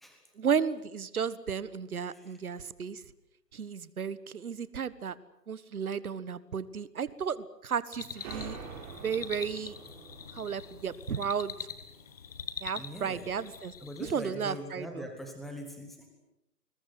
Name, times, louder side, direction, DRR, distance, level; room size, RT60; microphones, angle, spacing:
voice 1, 0.4-3.0 3.5-5.2 5.5-8.6 9.0-9.7 10.3-11.5 12.6-13.7 14.0-15.0, right 7 dB, 60° right, 16 dB, 1.6 m, -33 dB
sound 1, 7.9-14.3, left 7 dB, 25° left, 1.1 m, -44 dB
sound 2, 8.1-12.6, right 5 dB, 20° right, 4.1 m, -46 dB
voice 2, 12.7-13.3 13.8-16.1, equal, ahead, 3 dB, 1.1 m, -42 dB
26.5 x 21.5 x 7.9 m, 0.87 s
hypercardioid pair, 160°, 49 cm